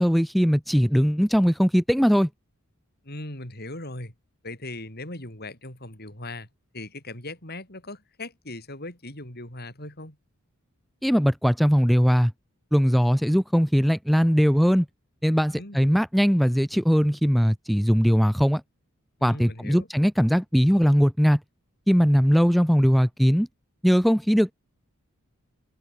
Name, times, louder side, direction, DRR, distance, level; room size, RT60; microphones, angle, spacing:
voice 1, 0.0-2.3 11.0-12.3 12.7-14.9 15.2-18.6 19.2-21.4 21.9-23.5 23.8-24.5, equal, ahead, 0.7 m, -20 dB
voice 2, 3.0-4.1 4.4-6.5 6.7-10.2 15.5-15.9 19.2-19.9, left 2 dB, 50° left, 7.7 m, -39 dB
open air
head